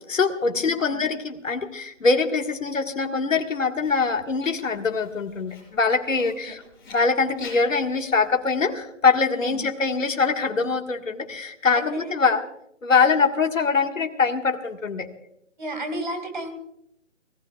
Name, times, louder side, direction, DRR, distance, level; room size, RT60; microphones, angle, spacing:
voice 1, 0.0-6.6 6.9-12.4 12.8-15.1, left 4 dB, 80° left, 4 dB, 1.8 m, -23 dB
voice 2, 0.5-1.0 6.2-6.3 9.4-9.7 11.7-12.3 15.6-16.5, right 1 dB, 35° right, 6 dB, 2.2 m, -33 dB
Writing, 3.8-8.8, left 3 dB, 15° left, 5.6 m, -50 dB
28.0 x 17.5 x 2.4 m, 0.75 s
hypercardioid pair, 175°, 39 cm